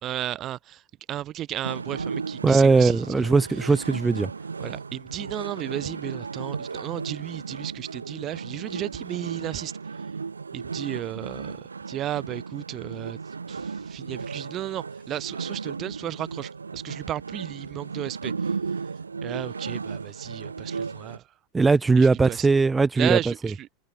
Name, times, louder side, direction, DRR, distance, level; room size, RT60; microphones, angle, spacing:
voice 1, 0.0-0.8 1.1-3.1 4.6-9.7 10.5-13.2 13.5-18.5 19.2-21.2 22.0-22.5 23.0-23.7, right 12 dB, 30° right, 2.8 m, -34 dB
sound 1, 1.6-21.2, right 5 dB, 75° right, 2.0 m, -35 dB
voice 2, 2.4-4.3 21.5-23.2, right 4 dB, 10° right, 2.9 m, -19 dB
figure-of-eight pair, 90°, 0 cm